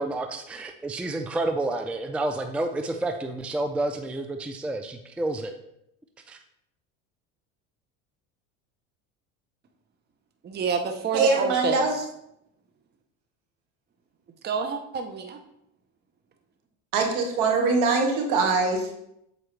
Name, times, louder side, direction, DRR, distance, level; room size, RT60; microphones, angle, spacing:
voice 1, 0.0-5.5 6.3-6.4, right 2 dB, 5° right, 6 dB, 0.4 m, -29 dB
voice 2, 10.4-12.1 14.4-15.4, right 6 dB, 25° right, 5 dB, 0.7 m, -28 dB
voice 3, 11.1-11.9 16.9-18.9, right 3 dB, 65° right, 3 dB, 1.6 m, -23 dB
7.5 x 4.5 x 3.2 m, 0.79 s
supercardioid pair, 90°, 37 cm